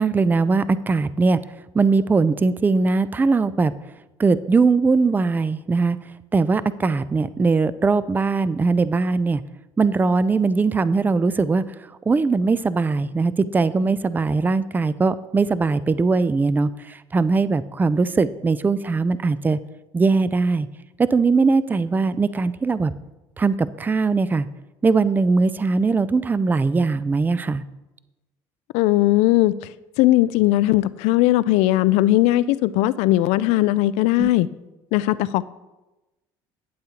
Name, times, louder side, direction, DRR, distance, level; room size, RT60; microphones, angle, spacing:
voice 1, 0.0-1.4 1.7-3.7 4.2-6.0 6.3-9.4 9.8-11.6 12.1-19.6 19.9-20.7 21.0-22.9 23.4-24.5 24.8-27.6 34.2-34.3, right 4 dB, 15° right, 15 dB, 0.4 m, -20 dB
voice 2, 28.7-29.5 30.0-34.5 34.9-35.4, left 16 dB, 75° left, 17 dB, 0.4 m, -18 dB
11.5 x 8.2 x 2.9 m, 1.0 s
supercardioid pair, 90°, 11 cm